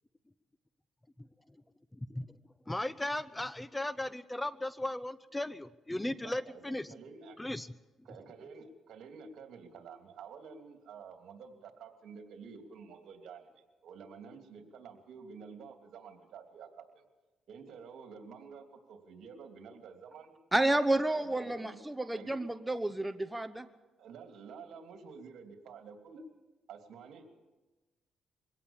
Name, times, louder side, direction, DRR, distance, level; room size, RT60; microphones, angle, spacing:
voice 1, 1.9-2.4 2.7-6.9 7.4-7.7, left 1 dB, 10° left, 16 dB, 0.6 m, -36 dB
voice 2, 6.2-7.4 8.0-17.0 17.5-20.3 20.9-22.4 24.0-26.2 26.7-27.3, right 5 dB, 70° right, 5 dB, 3.0 m, -50 dB
voice 3, 20.5-23.7, right 1 dB, 10° right, 9 dB, 1.0 m, -30 dB
23.0 x 17.0 x 7.3 m, 1.2 s
cardioid pair, 90°, 0 cm